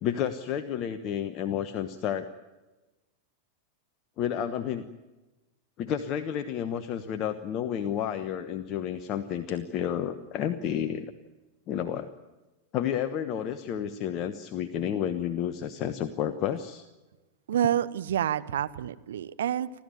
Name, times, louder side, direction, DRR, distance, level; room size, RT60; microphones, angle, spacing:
voice 1, 0.0-2.3 4.2-4.9 5.8-11.1 11.7-12.1 12.7-16.8, left 9 dB, 35° left, 10 dB, 1.1 m, -31 dB
voice 2, 17.5-19.7, right 10 dB, 60° right, 12 dB, 1.0 m, -28 dB
29.5 x 13.5 x 9.1 m, 1.1 s
figure-of-eight pair, 90°, 0 cm